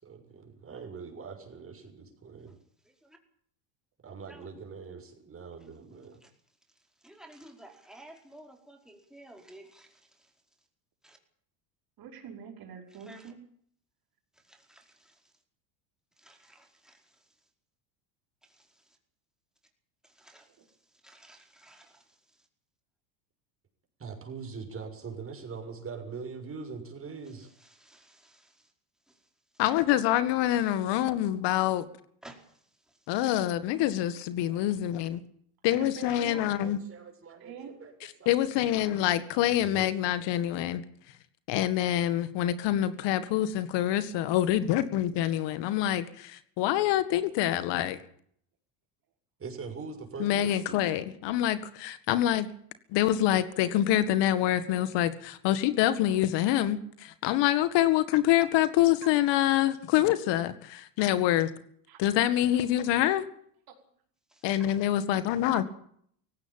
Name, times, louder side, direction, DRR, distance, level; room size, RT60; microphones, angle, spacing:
voice 1, 0.0-2.6 4.0-6.2 24.0-27.5 36.6-38.9 39.5-39.9 49.4-51.0, right 5 dB, 25° right, 5 dB, 6.6 m, -43 dB
voice 2, 7.0-10.3 11.0-11.2 12.9-13.3 14.4-15.2 16.2-17.2 18.4-18.8 20.0-20.5 21.0-22.2 27.6-28.7 29.1-29.2 32.2-33.0 64.3-64.5, right 1 dB, ahead, 2 dB, 4.8 m, -54 dB
voice 3, 12.0-13.4 35.8-36.4 37.4-37.7 61.9-62.0 62.5-62.6 63.7-63.8, right 7 dB, 45° right, 3 dB, 5.5 m, -44 dB
voice 4, 29.6-31.9 33.1-35.2 35.6-36.8 38.3-40.8 41.5-48.0 50.2-52.5 52.9-61.5 62.0-63.3 64.4-65.6, left 12 dB, 60° left, 13 dB, 1.9 m, -26 dB
18.0 x 16.5 x 8.9 m, 0.64 s
supercardioid pair, 105°, 47 cm